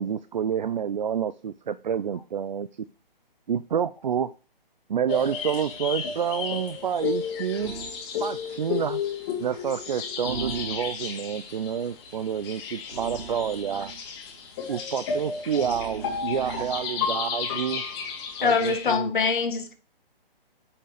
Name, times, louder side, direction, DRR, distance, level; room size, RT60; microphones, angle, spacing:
voice 1, 0.0-2.7 3.5-4.3 4.9-7.7 8.2-9.0 9.4-13.9 14.7-17.8 18.4-19.1, right 8 dB, 50° right, 0.5 m, -28 dB
sound 1, 5.1-18.9, left 6 dB, 25° left, 3.4 m, -33 dB
sound 2, 7.6-8.0 10.2-11.2 12.9-14.0 15.5-16.9, right 5 dB, 75° right, 2.7 m, -38 dB
voice 2, 18.4-19.7, left 5 dB, 55° left, 2.0 m, -24 dB
9.0 x 6.0 x 4.9 m
hypercardioid pair, 165°, 30 cm